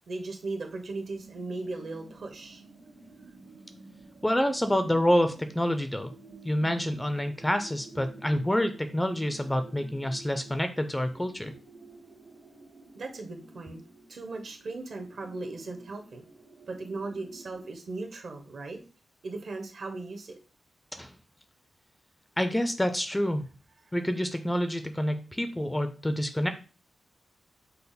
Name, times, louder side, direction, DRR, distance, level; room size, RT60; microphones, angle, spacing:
voice 1, 0.1-2.6 12.9-13.8 14.1-16.2 16.7-18.8 19.2-20.4, right 3 dB, 60° right, 3 dB, 1.0 m, -37 dB
sound 1, 1.1-17.7, right 3 dB, 80° right, 1.6 m, -51 dB
voice 2, 4.2-6.1 6.4-11.5 21.0-21.1 22.4-23.5 23.9-26.5, equal, 10° left, 8 dB, 0.4 m, -27 dB
5.5 x 2.0 x 4.0 m, 0.35 s
wide cardioid pair, 120°, 0 cm